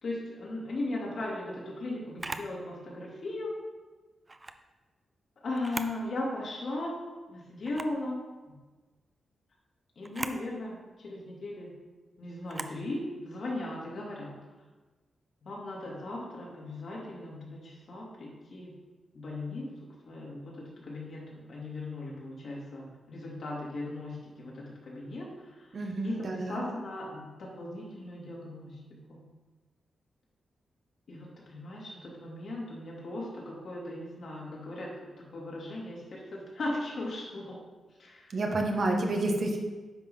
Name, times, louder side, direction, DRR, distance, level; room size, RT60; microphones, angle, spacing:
voice 1, 0.0-3.5 5.4-7.0 7.3-8.2 10.0-11.7 12.2-14.3 15.4-18.7 19.1-19.7 20.1-25.7 26.0-28.7 29.1-29.2 31.1-37.6 38.0-38.4, left 2 dB, 60° left, -4 dB, 2.9 m, -38 dB
Camera, 2.2-2.5 4.3-4.6 5.5-6.0 6.5-6.6 7.6-8.0 10.0-10.4 12.5-12.8, right 2 dB, 25° right, 0.5 m, -39 dB
voice 2, 25.7-26.6 38.3-39.6, right 2 dB, 50° right, 2 dB, 1.3 m, -29 dB
10.0 x 4.0 x 5.5 m, 1.2 s
cardioid pair, 95°, 0 cm